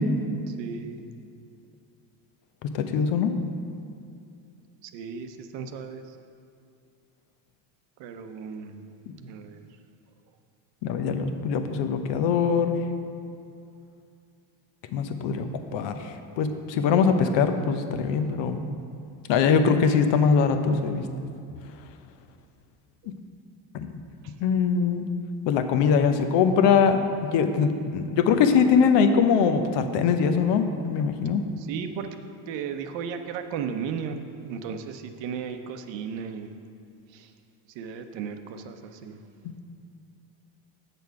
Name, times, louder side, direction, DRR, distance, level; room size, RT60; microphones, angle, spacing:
voice 1, 0.5-1.1 4.8-6.2 8.0-8.9 9.2-9.7 18.2-18.3 23.0-23.1 24.2-24.3 31.6-32.1 32.5-36.5 37.1-37.3 37.7-39.2, right 6 dB, 60° right, 7 dB, 0.8 m, -35 dB
voice 2, 2.7-3.3 10.8-12.7 14.9-16.0 16.4-18.6 19.3-21.0 23.7-23.9 24.4-25.1 25.5-27.0 27.3-31.5, left 6 dB, 60° left, 7 dB, 0.9 m, -22 dB
7.8 x 6.8 x 4.7 m, 2.4 s
supercardioid pair, 100°, 49 cm